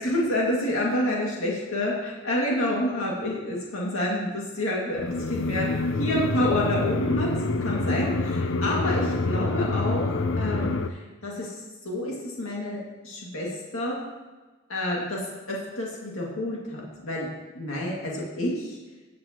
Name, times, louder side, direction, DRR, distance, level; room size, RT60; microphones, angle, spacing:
voice 1, 0.0-7.3 7.6-11.5 11.8-13.5 13.7-14.0 14.7-15.2 15.5-17.3 17.5-18.8, left 1 dB, 85° left, -4 dB, 2.3 m, -28 dB
sound 1, 5.0-10.9, left 3 dB, 65° left, 0.6 m, -26 dB
15.5 x 7.6 x 3.0 m, 1.2 s
head